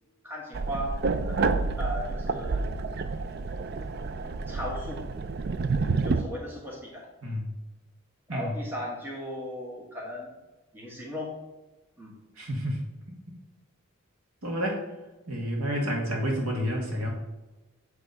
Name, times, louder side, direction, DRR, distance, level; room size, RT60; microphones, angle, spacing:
voice 1, 0.2-2.7 4.5-5.0 6.0-7.1 8.3-10.3 10.7-11.3 12.0-12.2, equal, 10° right, -3 dB, 1.4 m, -37 dB
sound 1, 0.5-6.2, right 3 dB, 45° right, 0.4 m, -29 dB
voice 2, 12.4-12.8 13.3-13.4 14.4-14.8 15.3-17.1, equal, 75° right, -1 dB, 1.8 m, -29 dB
8.0 x 3.5 x 5.3 m, 1.1 s
head